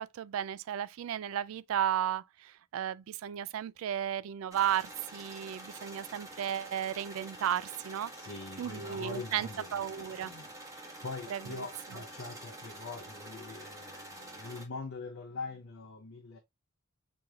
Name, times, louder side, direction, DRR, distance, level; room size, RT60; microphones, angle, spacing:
voice 1, 0.0-8.1 8.6-10.3 11.3-11.6 11.9-12.0, right 10 dB, 75° right, 0.3 m, -34 dB
sound 1, 4.5-14.6, right 1 dB, 15° right, 1.2 m, -47 dB
voice 2, 8.1-16.4, left 3 dB, 85° left, 0.8 m, -43 dB
6.2 x 3.0 x 2.3 m
head